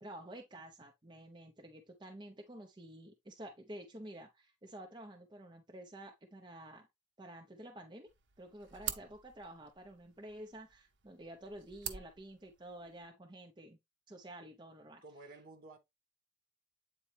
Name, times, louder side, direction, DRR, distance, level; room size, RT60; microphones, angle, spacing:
voice 1, 0.0-6.9 7.2-8.1 8.4-13.8 14.1-15.0, right 1 dB, 25° right, 0.8 m, -50 dB
sound 1, 8.1-13.1, right 9 dB, 65° right, 0.9 m, -47 dB
voice 2, 8.7-9.1 15.0-15.8, right 2 dB, 50° right, 1.5 m, -54 dB
8.7 x 4.1 x 3.3 m
head